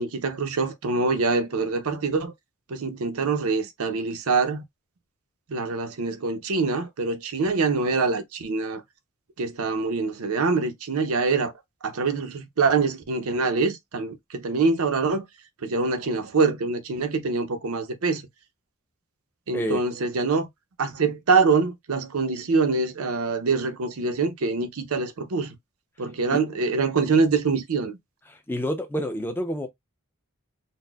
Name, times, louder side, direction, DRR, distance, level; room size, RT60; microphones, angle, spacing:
voice 1, 0.0-2.3 2.7-4.6 5.5-8.8 9.4-11.5 11.8-15.2 15.6-18.2 19.5-20.5 20.8-25.5 26.0-28.0, right 4 dB, 70° right, 0.6 m, -24 dB
voice 2, 28.3-29.7, equal, 10° left, 0.5 m, -28 dB
4.0 x 2.1 x 2.2 m
head